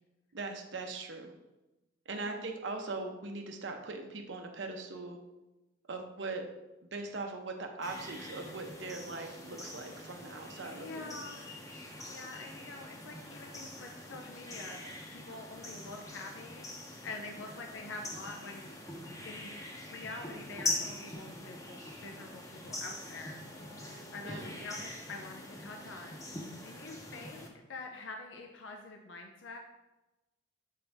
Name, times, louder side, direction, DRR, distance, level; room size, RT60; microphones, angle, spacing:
voice 1, 0.3-1.3 2.1-5.2 5.9-6.5 6.9-11.2 24.2-24.5, right 3 dB, 75° right, 4 dB, 0.8 m, -40 dB
voice 2, 2.1-2.5 10.6-11.6 12.1-14.8 15.1-16.7 17.0-18.7 19.2-19.5 19.9-23.4 23.8-29.6, left 3 dB, 85° left, 2 dB, 0.6 m, -46 dB
sound 1, 7.8-27.5, left 2 dB, 20° left, 0.8 m, -43 dB
7.5 x 4.0 x 3.4 m, 1.0 s
head